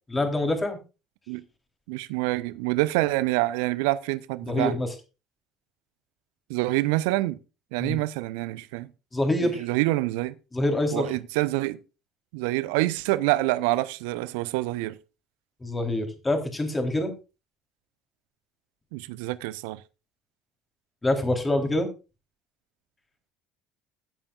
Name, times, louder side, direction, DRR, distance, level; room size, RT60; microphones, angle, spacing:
voice 1, 0.1-0.8 4.5-4.9 7.8-8.0 9.1-9.7 10.5-11.1 15.6-17.1 21.0-21.9, left 1 dB, 20° left, 3.6 m, -25 dB
voice 2, 1.9-4.8 6.5-7.4 7.7-8.9 9.4-10.3 10.9-11.8 12.3-15.0 18.9-19.8, right 19 dB, 65° right, 0.7 m, -26 dB
16.5 x 8.7 x 2.4 m
figure-of-eight pair, 60°, 0 cm